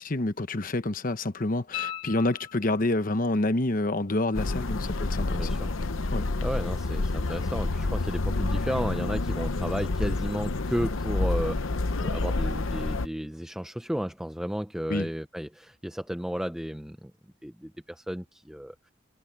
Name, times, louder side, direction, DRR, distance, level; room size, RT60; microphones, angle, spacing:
voice 1, 0.0-5.5 6.1-6.2 14.9-15.1, left 2 dB, 40° left, 0.9 m, -28 dB
sound 1, 1.7-3.1 5.9-6.0, left 11 dB, 25° left, 1.3 m, -37 dB
sound 2, 4.3-13.1, left 2 dB, 80° left, 0.9 m, -28 dB
voice 2, 5.3-5.8 6.1-17.1 17.4-18.9, equal, 5° right, 0.5 m, -33 dB
head